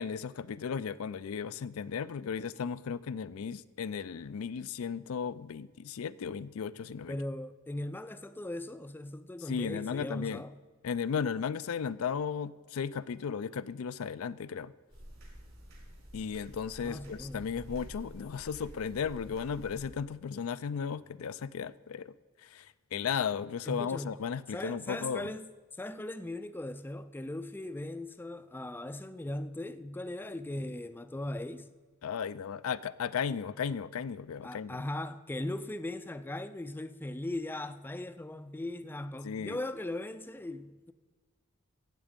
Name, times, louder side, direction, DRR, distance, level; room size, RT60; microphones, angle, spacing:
voice 1, 0.0-7.2 9.5-10.4 10.8-14.7 16.1-22.1 22.4-25.3 32.0-34.8 39.2-39.6, left 6 dB, 90° left, 0.4 m, -35 dB
voice 2, 7.1-10.5 16.8-17.5 23.7-24.2 24.5-25.5 25.8-31.7 34.4-40.9, left 1 dB, 10° left, 0.3 m, -39 dB
sound 1, 14.9-19.9, equal, 65° right, 4.3 m, -49 dB
15.5 x 8.0 x 5.2 m
head